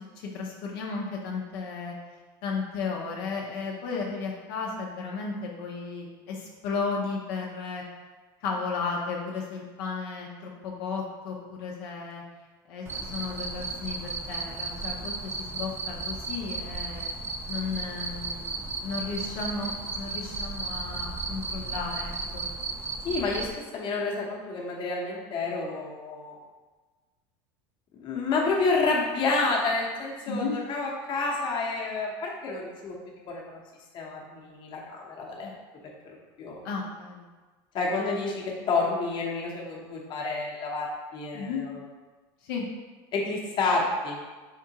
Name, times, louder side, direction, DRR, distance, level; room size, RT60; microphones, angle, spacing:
voice 1, 0.3-2.0 2.4-7.8 8.4-12.2 12.7-17.1 17.5-22.5 30.3-30.5 35.4-35.5 36.6-37.3 41.3-41.6 42.4-42.7, left 4 dB, 75° left, -2 dB, 0.6 m, -34 dB
Cricket, 12.9-23.5, right 3 dB, 20° right, 0.3 m, -35 dB
voice 2, 23.0-26.4 27.9-32.9 33.3-33.6 33.9-35.5 36.4-36.6 37.7-41.8 43.1-44.2, left 3 dB, 40° left, -2 dB, 0.8 m, -29 dB
3.6 x 3.5 x 2.8 m, 1.3 s
supercardioid pair, 125°, 12 cm